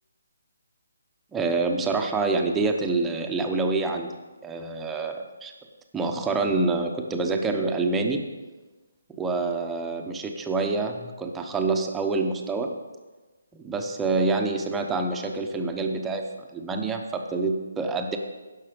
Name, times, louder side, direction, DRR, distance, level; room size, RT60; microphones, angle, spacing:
voice 1, 1.3-4.1 4.4-5.5 5.9-8.2 9.1-12.7 13.5-18.2, right 3 dB, 10° right, 3 dB, 0.9 m, -27 dB
16.0 x 6.4 x 5.2 m, 1.2 s
hypercardioid pair, 155°, 0 cm